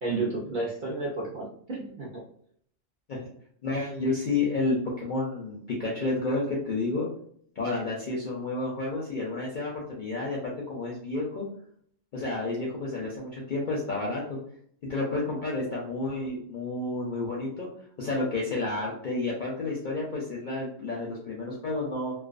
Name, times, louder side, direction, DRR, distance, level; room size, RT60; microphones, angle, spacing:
voice 1, 0.0-2.2, right 3 dB, 60° right, -4 dB, 0.5 m, -32 dB
voice 2, 3.6-7.1 7.6-11.5 12.1-14.4 14.9-17.7 18.0-22.1, left 2 dB, 60° left, -3 dB, 0.5 m, -30 dB
2.4 x 2.2 x 2.4 m, 0.64 s
omnidirectional pair, 1.3 m